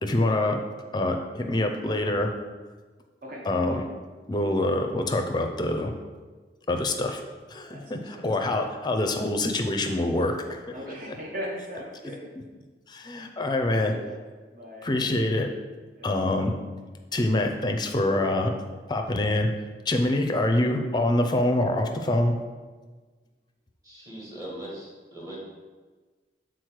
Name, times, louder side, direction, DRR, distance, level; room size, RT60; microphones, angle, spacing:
voice 1, 0.0-0.6 0.9-2.3 3.5-3.9 4.3-5.9 6.7-7.2 7.5-10.7 12.0-12.1 12.9-13.9 14.8-15.5 16.0-16.6 17.1-18.5 18.9-19.5 19.9-22.4, left 1 dB, 25° left, 4 dB, 0.5 m, -25 dB
voice 2, 7.7-8.2 10.7-12.3 13.1-14.1 14.5-14.9 16.0-16.2, equal, 50° right, -2 dB, 1.2 m, -39 dB
voice 3, 23.8-25.4, right 1 dB, 20° right, -5 dB, 1.7 m, -40 dB
6.5 x 4.0 x 4.7 m, 1.4 s
head